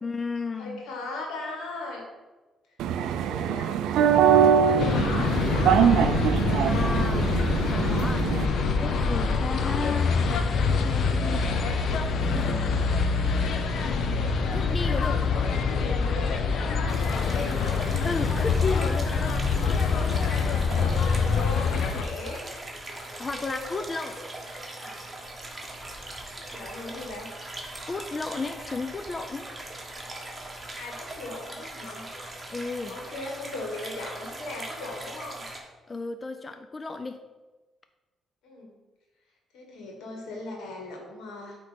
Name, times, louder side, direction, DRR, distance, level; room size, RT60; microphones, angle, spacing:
voice 1, 0.0-0.8 4.6-4.7 6.6-7.4 7.7-8.2 8.8-10.1 10.6-11.4 12.3-12.9 14.5-15.4 18.0-19.2 23.2-24.2 27.9-29.5 32.5-33.0 35.9-37.2, left 3 dB, 30° left, 8 dB, 0.4 m, -33 dB
voice 2, 0.6-2.0 3.0-3.8 4.6-6.2 7.1-7.2 7.8-8.0 9.3-9.6 15.4-16.3 16.8-17.8 20.5-22.5 23.3-23.8 24.5-25.1 26.5-27.3 30.7-32.1 32.9-35.4 38.4-38.7 39.5-41.6, left 2 dB, 85° left, 0 dB, 1.8 m, -38 dB
sound 1, 2.8-8.5, right 8 dB, 85° right, 0.3 m, -23 dB
sound 2, 4.8-22.0, left 5 dB, 65° left, 0.7 m, -25 dB
sound 3, 16.9-35.6, right 1 dB, 20° right, 1.4 m, -40 dB
8.1 x 3.2 x 5.1 m, 1.2 s
cardioid pair, 90°, 0 cm